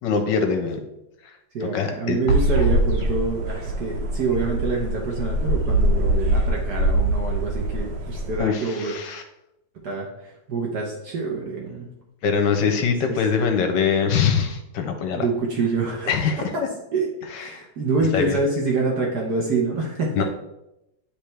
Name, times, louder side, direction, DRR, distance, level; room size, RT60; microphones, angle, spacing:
voice 1, 0.0-0.8 1.6-2.2 8.4-9.2 12.2-15.2 16.1-16.4 17.3-17.6 18.1-18.4 20.1-20.2, left 6 dB, 70° left, 6 dB, 1.2 m, -23 dB
voice 2, 1.5-8.9 9.8-11.9 12.8-13.2 15.1-16.1 16.4-16.6 16.9-17.1 17.3-20.2, right 3 dB, 55° right, -1 dB, 1.4 m, -26 dB
sound 1, 2.3-8.4, right 1 dB, 85° right, 1.7 m, -23 dB
9.6 x 3.4 x 3.3 m, 0.88 s
omnidirectional pair, 2.3 m